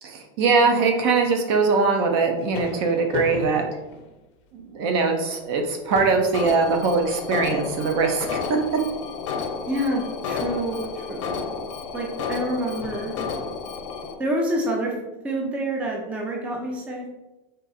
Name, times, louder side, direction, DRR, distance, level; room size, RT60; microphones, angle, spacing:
voice 1, 0.0-3.6 4.5-8.6, right 4 dB, 55° right, 4 dB, 0.7 m, -22 dB
sound 1, 2.0-4.7 5.1-5.3 5.6-9.1 10.4-11.1 12.0-12.1 12.8-13.3, left 5 dB, 40° left, 0.5 m, -37 dB
Alarm, 6.3-14.1, left 5 dB, 80° left, 0.7 m, -31 dB
voice 2, 9.7-11.4 11.9-13.1 14.2-15.0 15.2-17.1, right 1 dB, 10° right, -1 dB, 0.4 m, -27 dB
3.8 x 2.7 x 4.0 m, 1.1 s
supercardioid pair, 165°, 16 cm